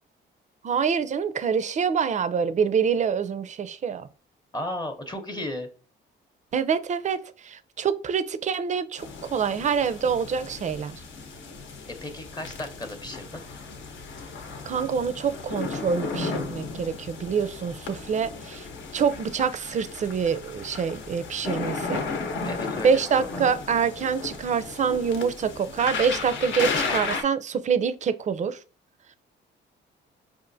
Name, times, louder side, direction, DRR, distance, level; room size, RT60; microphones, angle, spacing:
voice 1, 0.6-4.1 6.5-11.0 14.7-18.7 18.9-22.0 22.8-28.6, right 6 dB, 40° right, 0.4 m, -26 dB
voice 2, 4.5-5.7 12.0-13.4 22.4-23.4, left 1 dB, 20° left, 0.7 m, -35 dB
sound 1, 9.0-27.2, left 4 dB, 70° left, 0.8 m, -34 dB
4.9 x 2.5 x 2.6 m
cardioid pair, 90°, 20 cm